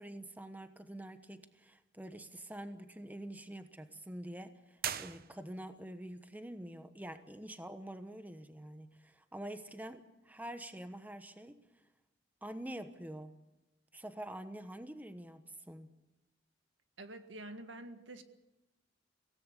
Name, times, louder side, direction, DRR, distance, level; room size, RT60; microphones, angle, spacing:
voice 1, 0.0-11.6 12.4-13.3 13.9-15.9, right 1 dB, 10° right, 9 dB, 1.1 m, -46 dB
sound 1, 4.8-5.8, right 9 dB, 55° right, 0.9 m, -40 dB
voice 2, 17.0-18.2, right 1 dB, 75° right, 8 dB, 1.9 m, -47 dB
24.0 x 17.5 x 8.3 m, 0.98 s
head